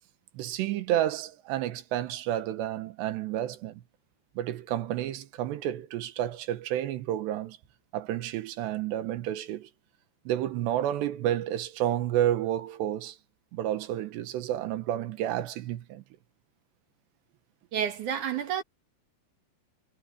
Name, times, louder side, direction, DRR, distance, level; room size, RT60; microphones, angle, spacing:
voice 1, 0.3-3.8 4.4-7.6 7.9-9.7 10.3-13.2 13.5-16.0, right 12 dB, 85° right, 3.3 m, -30 dB
voice 2, 17.7-18.6, right 8 dB, 55° right, 3.0 m, -30 dB
omnidirectional pair, 4.9 m